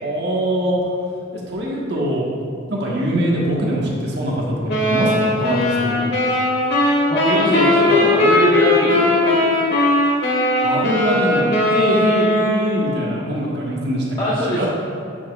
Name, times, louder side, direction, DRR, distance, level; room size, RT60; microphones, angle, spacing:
voice 1, 0.0-0.8 1.5-2.3 2.7-6.1 10.6-11.4 11.7-14.0 14.4-14.7, right 1 dB, 60° right, -4 dB, 1.5 m, -22 dB
sound 1, 4.7-13.1, left 2 dB, 60° left, 1.6 m, -18 dB
voice 2, 7.1-9.8 14.2-14.7, equal, 20° left, -8 dB, 1.0 m, -21 dB
11.5 x 6.1 x 2.4 m, 2.3 s
head